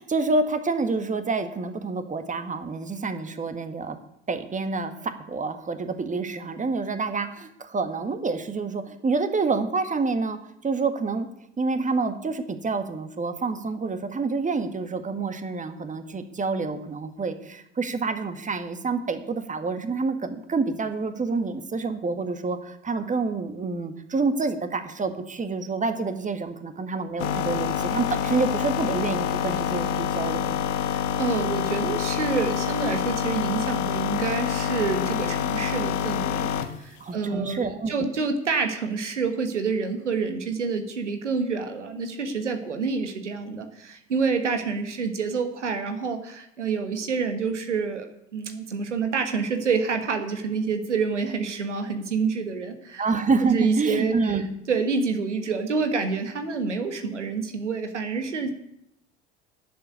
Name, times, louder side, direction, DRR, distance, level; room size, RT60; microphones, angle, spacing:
voice 1, 0.0-4.0 4.3-11.3 11.6-30.6 37.0-37.9 53.0-54.5, right 4 dB, 20° right, 8 dB, 1.8 m, -28 dB
sound 1, 27.2-36.8, left 8 dB, 60° left, 1.3 m, -27 dB
voice 2, 30.8-36.5 36.8-48.1 48.3-53.0 53.4-54.4 54.7-58.5, right 5 dB, 85° right, 7 dB, 1.5 m, -27 dB
11.5 x 7.8 x 9.6 m, 0.78 s
figure-of-eight pair, 65°, 35 cm